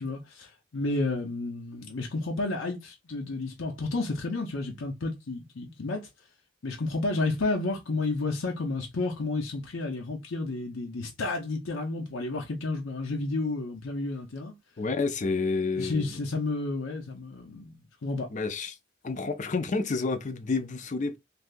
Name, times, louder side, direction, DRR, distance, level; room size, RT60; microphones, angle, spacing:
voice 1, 0.0-6.1 6.6-14.5 15.8-17.8 18.0-18.3, left 2 dB, 85° left, 0.7 m, -31 dB
voice 2, 14.8-16.1 18.3-18.8 19.0-21.2, left 4 dB, 40° left, 0.5 m, -29 dB
3.4 x 2.7 x 2.5 m
head